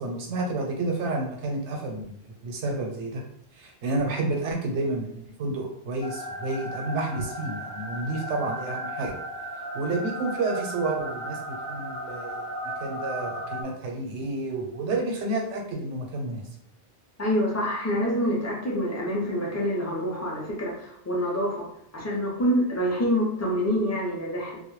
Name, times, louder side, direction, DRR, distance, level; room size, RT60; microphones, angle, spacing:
voice 1, 0.0-2.2 2.4-3.2 3.6-9.2 9.7-12.5 12.8-16.4, right 2 dB, 90° right, 1 dB, 0.9 m, -30 dB
sound 1, 6.0-13.6, equal, 70° left, 0.8 m, -35 dB
voice 2, 17.2-21.7 21.9-24.6, equal, 25° left, -3 dB, 0.3 m, -26 dB
2.2 x 2.0 x 3.0 m, 0.75 s
omnidirectional pair, 1.1 m